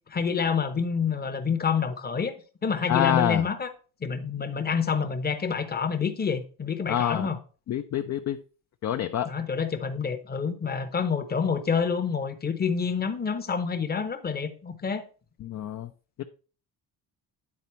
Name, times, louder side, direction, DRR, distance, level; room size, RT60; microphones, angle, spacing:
voice 1, 0.1-2.3 2.6-3.7 4.0-7.4 9.3-15.0, left 6 dB, 25° left, 0.9 m, -27 dB
voice 2, 2.9-3.5 6.9-7.3 7.7-8.4 8.8-9.3 15.4-15.9 16.2-16.3, left 10 dB, 45° left, 0.5 m, -26 dB
9.9 x 4.2 x 4.3 m
cardioid pair, 130°, 41 cm